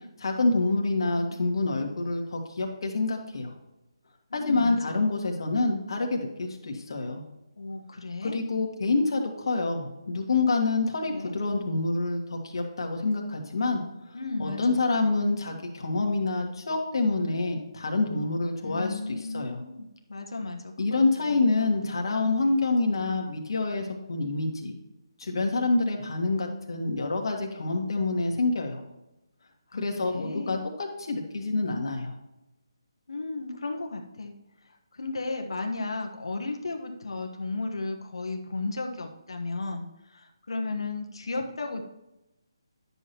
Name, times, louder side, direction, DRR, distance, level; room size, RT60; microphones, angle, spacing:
voice 1, 0.2-3.5 4.3-7.2 8.2-13.8 14.4-19.6 20.8-24.7 25.2-28.8 29.7-30.6 31.0-32.1, left 3 dB, 60° left, 2 dB, 1.8 m, -27 dB
voice 2, 4.3-5.1 7.6-8.4 11.1-11.3 14.1-14.9 18.6-22.0 29.7-30.7 33.1-34.3 34.6-41.8, left 3 dB, 75° left, 3 dB, 1.3 m, -35 dB
10.5 x 7.0 x 3.0 m, 0.93 s
hypercardioid pair, 160°, 3 cm